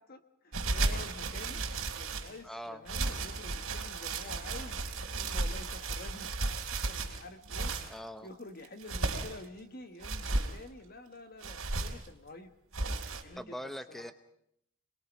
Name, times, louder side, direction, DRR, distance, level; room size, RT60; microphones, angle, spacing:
voice 1, 0.0-1.6 2.0-4.8 5.1-7.7 8.2-12.5 13.2-14.1, left 2 dB, 45° left, 8 dB, 1.4 m, -49 dB
sound 1, 0.5-2.4 2.9-7.9 8.6-9.5 10.0-10.6 11.4-12.1 12.7-13.2, right 3 dB, 80° right, 3.4 m, -34 dB
voice 2, 2.4-2.8 7.9-8.3 13.4-14.1, equal, ahead, 10 dB, 0.8 m, -42 dB
26.5 x 21.0 x 5.3 m, 0.74 s
head